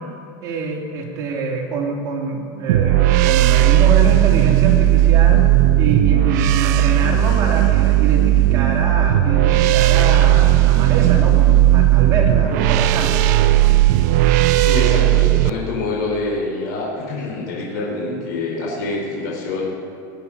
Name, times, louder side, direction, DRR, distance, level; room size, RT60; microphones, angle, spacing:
voice 1, 0.4-13.3, right 3 dB, 35° right, -1 dB, 2.4 m, -25 dB
sound 1, 2.7-15.5, right 14 dB, 65° right, 0.6 m, -15 dB
voice 2, 14.5-19.7, left 2 dB, 85° left, -4 dB, 4.3 m, -25 dB
19.0 x 8.5 x 5.5 m, 2.4 s
supercardioid pair, 155°, 10 cm